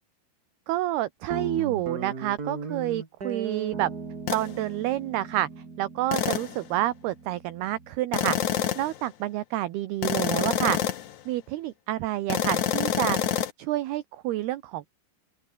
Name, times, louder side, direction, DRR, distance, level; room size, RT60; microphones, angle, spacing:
voice 1, 0.7-3.9 4.3-5.5 5.8-10.8 11.3-13.2 13.6-14.9, right 15 dB, 70° right, 2.9 m, -29 dB
Guitar, 1.3-8.0, right 4 dB, 25° right, 2.5 m, -38 dB
sound 1, 4.3-4.5 6.1-6.6 8.1-9.0 10.0-11.1 12.3-13.5, left 11 dB, 60° left, 2.1 m, -27 dB
open air
omnidirectional pair, 5.2 m